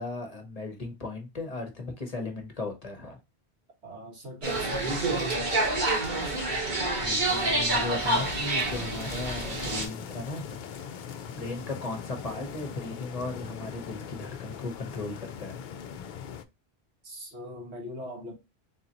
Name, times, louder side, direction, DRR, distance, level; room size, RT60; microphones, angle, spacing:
voice 1, 0.0-3.2 7.0-10.9 11.3-15.6, left 2 dB, 40° left, 0.9 m, -37 dB
voice 2, 3.8-5.1 17.0-18.3, equal, 80° right, 2.0 m, -41 dB
sound 1, 4.4-9.9, right 2 dB, 45° right, 1.4 m, -28 dB
sound 2, 8.0-16.4, left 8 dB, 60° left, 0.6 m, -41 dB
3.9 x 3.6 x 2.8 m
omnidirectional pair, 1.1 m